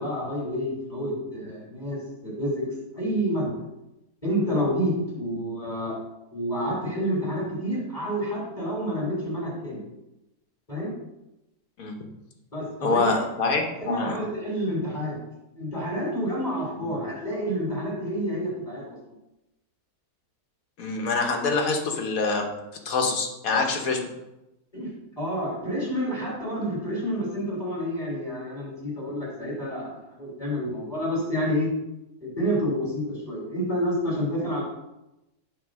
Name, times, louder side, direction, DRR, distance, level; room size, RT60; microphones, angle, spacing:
voice 1, 0.0-2.6 2.9-3.5 4.2-6.0 6.3-9.8 10.7-10.9 12.5-13.2 13.8-15.2 15.5-19.0 24.7-24.9 25.2-31.7 32.2-34.6, equal, 25° left, -7 dB, 2.8 m, -29 dB
voice 2, 12.8-14.2 16.8-16.9 20.8-22.5 22.8-24.1, left 3 dB, 70° left, 3 dB, 1.5 m, -25 dB
8.4 x 3.2 x 6.3 m, 0.93 s
omnidirectional pair, 1.6 m